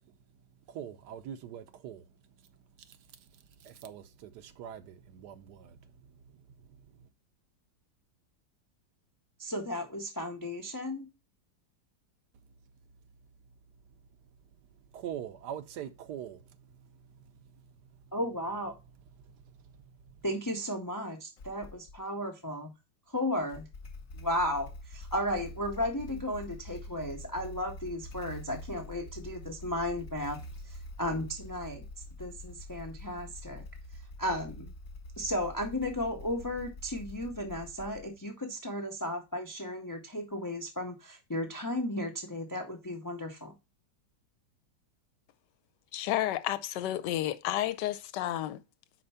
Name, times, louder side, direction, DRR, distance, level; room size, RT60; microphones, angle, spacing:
voice 1, 0.7-2.1 2.9-3.3 3.6-5.8 14.9-16.4 19.2-19.3, right 9 dB, 70° right, 1.3 m, -43 dB
voice 2, 9.4-11.1 18.1-18.7 20.2-22.7 23.1-23.7 24.1-30.4 30.6-31.8 32.2-33.6 34.2-34.7 35.2-43.5, left 1 dB, 35° left, 0.3 m, -34 dB
Motorcycle / Engine starting, 21.4-22.0 23.4-38.3, left 1 dB, 55° left, 1.3 m, -46 dB
voice 3, 45.9-48.6, left 13 dB, 80° left, 1.2 m, -31 dB
5.1 x 4.4 x 5.5 m
omnidirectional pair, 1.9 m